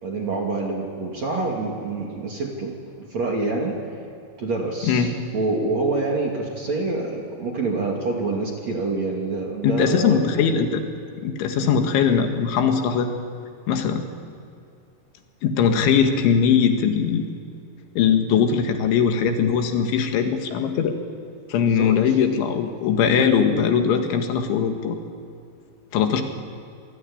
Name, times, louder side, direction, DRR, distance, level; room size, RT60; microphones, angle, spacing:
voice 1, 0.0-3.8 4.4-10.4 11.5-11.7 21.6-22.2, right 3 dB, 45° right, 0 dB, 3.2 m, -27 dB
voice 2, 4.8-5.1 9.6-10.8 11.2-13.1 13.7-14.0 15.4-17.3 18.0-21.0 21.5-25.0 25.9-26.2, left 7 dB, 85° left, 5 dB, 4.2 m, -20 dB
27.5 x 21.5 x 10.0 m, 2.5 s
omnidirectional pair, 5.2 m